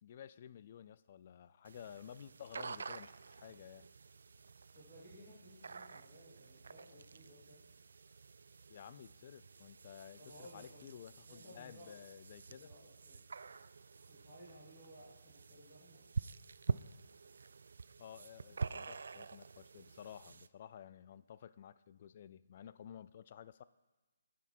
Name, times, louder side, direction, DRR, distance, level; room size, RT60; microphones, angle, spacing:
voice 1, 0.0-3.9 8.7-12.7 18.0-23.6, left 9 dB, 35° left, 16 dB, 0.3 m, -53 dB
sound 1, 1.6-20.5, right 5 dB, 65° right, 0.3 m, -47 dB
voice 2, 4.7-7.6 10.2-10.9 11.3-12.0 12.4-13.2 14.1-16.0, equal, 15° left, -11 dB, 2.8 m, -58 dB
9.8 x 6.0 x 4.4 m, 1.2 s
hypercardioid pair, 165°, 0 cm